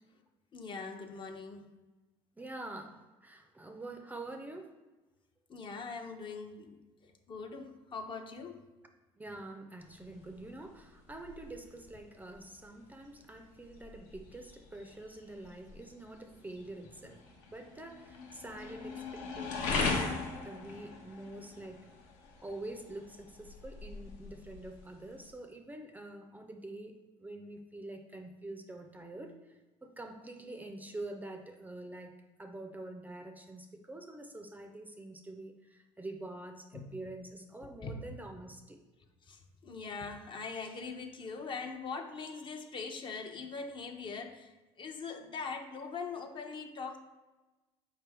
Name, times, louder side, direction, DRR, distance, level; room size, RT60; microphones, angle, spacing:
voice 1, 0.5-1.7 5.5-8.6 36.7-36.9 37.6-38.1 39.2-47.0, left 4 dB, 40° left, 5 dB, 0.5 m, -42 dB
voice 2, 2.4-4.7 9.2-17.2 17.5-22.0 22.4-38.8, right 2 dB, 15° right, 5 dB, 0.4 m, -46 dB
sound 1, 9.8-25.3, left 4 dB, 75° left, 0.7 m, -41 dB
4.4 x 3.3 x 3.3 m, 1.1 s
supercardioid pair, 85°, 13 cm